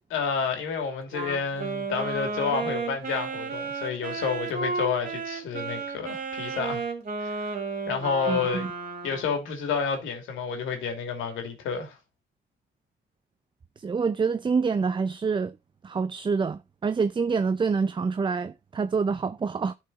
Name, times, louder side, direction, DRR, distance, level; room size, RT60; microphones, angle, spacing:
voice 1, 0.1-6.8 7.2-7.5 7.9-8.7 9.0-12.0, left 6 dB, 90° left, 2.6 m, -30 dB
Wind instrument woodwind instrument, 1.1-9.4, right 4 dB, 45° right, 2.8 m, -33 dB
voice 2, 8.3-8.7 13.8-15.6 15.8-19.7, right 5 dB, 25° right, 0.5 m, -26 dB
11.0 x 4.8 x 4.0 m
cardioid pair, 90°, 20 cm